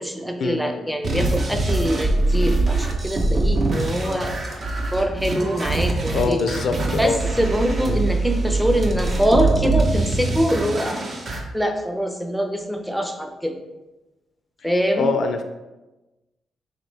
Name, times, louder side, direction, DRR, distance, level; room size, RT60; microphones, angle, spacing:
voice 1, 0.0-4.4 4.9-6.4 6.9-11.0 11.5-13.5 14.6-15.1, equal, ahead, 4 dB, 0.5 m, -24 dB
sound 1, 1.0-11.4, right 2 dB, 50° right, 0.7 m, -23 dB
voice 2, 6.1-7.2 14.9-15.4, left 4 dB, 70° left, 6 dB, 0.3 m, -23 dB
3.8 x 2.9 x 3.2 m, 1.1 s
cardioid pair, 80°, 0 cm